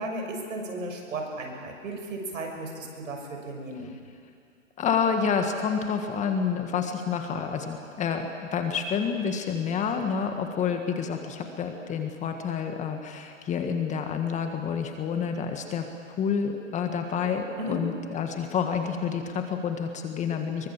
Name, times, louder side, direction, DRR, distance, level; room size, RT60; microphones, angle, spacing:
voice 1, 0.0-3.9 17.6-17.8, right 1 dB, 75° right, 2 dB, 6.6 m, -35 dB
voice 2, 4.8-15.9 16.2-20.7, left 6 dB, 20° left, 5 dB, 1.7 m, -28 dB
25.0 x 23.0 x 7.4 m, 2.3 s
hypercardioid pair, 140°, 40 cm